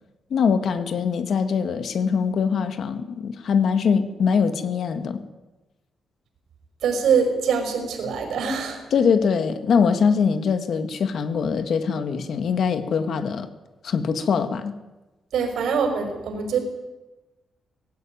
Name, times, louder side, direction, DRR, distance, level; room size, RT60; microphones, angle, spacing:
voice 1, 0.3-5.2 8.9-13.5 13.8-14.7, left 6 dB, 55° left, 9 dB, 1.8 m, -22 dB
voice 2, 6.8-8.8 15.3-16.6, right 6 dB, 80° right, 6 dB, 5.3 m, -23 dB
19.5 x 16.5 x 9.3 m, 1.1 s
wide cardioid pair, 160°, 0 cm